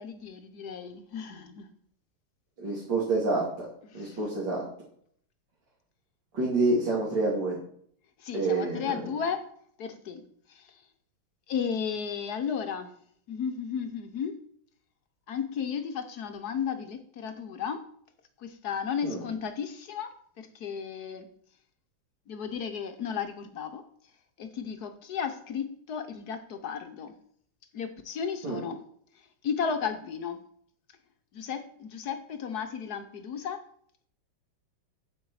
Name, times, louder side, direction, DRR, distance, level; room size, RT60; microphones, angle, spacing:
voice 1, 0.0-1.7 3.9-4.2 8.2-9.4 9.8-10.2 10.5-10.8 11.5-12.9 13.3-14.3 15.3-17.8 18.4-20.1 20.4-21.3 22.3-23.8 24.4-27.1 27.7-28.8 29.4-30.4 31.3-33.6, left 7 dB, 60° left, 8 dB, 1.1 m, -34 dB
voice 2, 2.6-3.4 3.9-4.6 6.3-7.6 8.3-9.0 19.0-19.2 28.4-28.6, right 3 dB, 65° right, -5 dB, 3.1 m, -27 dB
8.8 x 7.9 x 4.7 m, 0.63 s
omnidirectional pair, 2.2 m